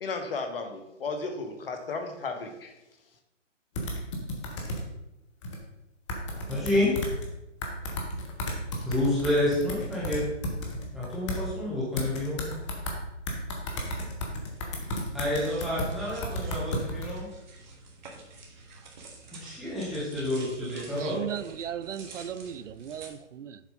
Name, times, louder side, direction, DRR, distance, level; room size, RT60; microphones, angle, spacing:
voice 1, 0.0-2.7, left 4 dB, 50° left, 1.3 m, -34 dB
sound 1, 3.7-4.8 5.4-5.6 6.1-7.2 7.6-11.4 12.0-12.9 13.2-17.1, left 1 dB, 25° left, 1.1 m, -33 dB
voice 2, 6.5-6.9 8.8-10.2 10.9-12.5 15.1-17.3 19.4-21.2, left 1 dB, ahead, 0.6 m, -29 dB
sound 2, 14.4-23.1, right 3 dB, 40° right, 1.5 m, -49 dB
voice 3, 20.6-23.6, right 9 dB, 75° right, 0.5 m, -37 dB
7.2 x 4.4 x 5.3 m
hypercardioid pair, 150°, 37 cm